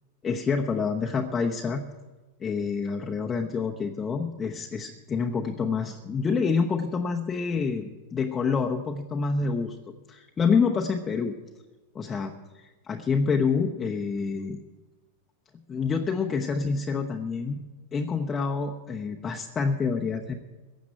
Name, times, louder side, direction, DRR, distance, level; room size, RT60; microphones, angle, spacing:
voice 1, 0.2-1.8 2.4-9.8 10.1-11.3 11.9-14.6 15.7-17.6 17.9-20.4, left 5 dB, 20° left, 1 dB, 0.9 m, -27 dB
15.5 x 7.3 x 9.1 m, 1.2 s
figure-of-eight pair, 90°, 0 cm